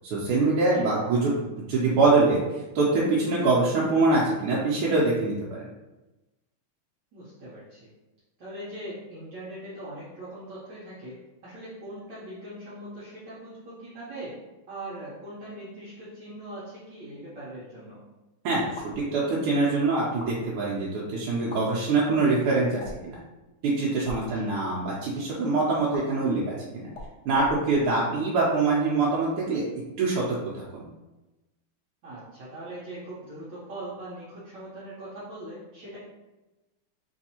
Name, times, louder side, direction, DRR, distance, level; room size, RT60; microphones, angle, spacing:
voice 1, 0.0-2.4 2.7-5.7 18.4-23.2 23.6-26.9 27.2-29.6 30.0-30.4 30.7-30.9, right 3 dB, 80° right, -5 dB, 1.5 m, -24 dB
voice 2, 7.1-7.9 8.4-11.2 11.4-14.4 14.7-18.0 24.3-24.4 32.0-36.0, right 1 dB, 65° right, -10 dB, 1.5 m, -41 dB
sound 1, 18.7-19.0 20.0-20.3 21.4-21.6 22.8-23.1 23.9-24.2 25.9-26.0 26.9-28.1, left 2 dB, 75° left, 1.0 m, -42 dB
4.0 x 2.6 x 2.8 m, 1.1 s
omnidirectional pair, 2.4 m